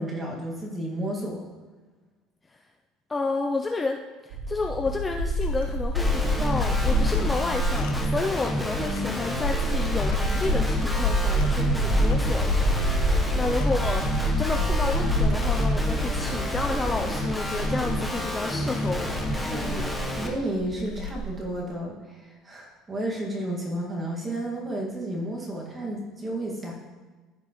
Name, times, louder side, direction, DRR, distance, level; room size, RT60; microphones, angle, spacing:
voice 1, 0.0-1.4 19.5-19.7 20.2-26.7, right 1 dB, 20° right, -2 dB, 2.0 m, -32 dB
voice 2, 3.1-4.0 4.2-14.0 14.4-19.1 19.4-20.0, left 3 dB, 15° left, 3 dB, 0.5 m, -31 dB
sound 1, 4.3-17.0, right 1 dB, 80° right, 1.1 m, -29 dB
sound 2, 4.6-21.5, left 1 dB, 85° left, 1.1 m, -28 dB
Guitar, 5.9-20.3, equal, ahead, 1.1 m, -30 dB
14.5 x 5.1 x 3.1 m, 1.3 s
cardioid pair, 130°, 0 cm